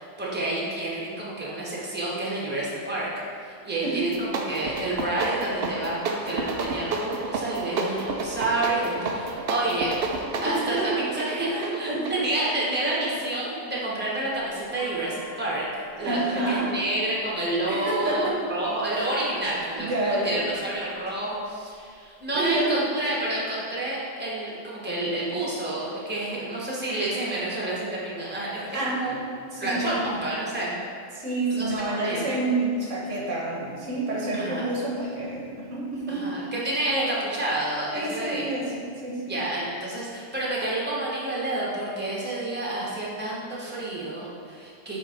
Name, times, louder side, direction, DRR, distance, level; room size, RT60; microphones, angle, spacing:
voice 1, 0.0-3.1 3.4-15.6 16.0-29.2 29.6-30.7 31.5-32.3 34.3-34.7 36.1-38.5 39.3-45.0, right 1 dB, 10° right, -6 dB, 1.2 m, -29 dB
sound 1, 4.0-14.3, right 3 dB, 60° right, 0.8 m, -32 dB
voice 2, 10.4-11.1 11.4-12.2 16.0-16.7 17.7-18.4 18.9-19.1 19.8-20.4 22.3-22.9 28.7-30.0 31.1-36.3 37.9-39.4, right 2 dB, 80° right, -4 dB, 1.5 m, -28 dB
sound 2, 14.4-18.6 19.4-19.9 20.5-21.1 21.5-21.6 21.7-22.6, left 2 dB, 75° left, 1.6 m, -49 dB
7.1 x 3.5 x 4.4 m, 2.3 s
omnidirectional pair, 1.3 m